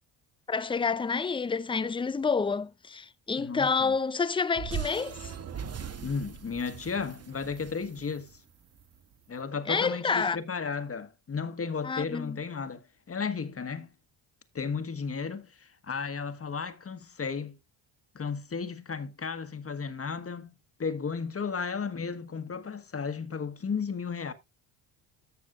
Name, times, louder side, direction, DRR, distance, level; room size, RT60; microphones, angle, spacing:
voice 1, 0.5-5.3 9.7-10.4 11.8-12.4, left 5 dB, 10° left, 0.5 m, -28 dB
voice 2, 3.4-3.9 6.0-8.4 9.3-13.9 14.5-17.6 18.1-20.5 20.8-24.3, left 5 dB, 30° left, 1.4 m, -34 dB
sound 1, 4.6-8.9, right 7 dB, 30° right, 1.1 m, -40 dB
14.0 x 6.5 x 2.5 m
supercardioid pair, 80°, 49 cm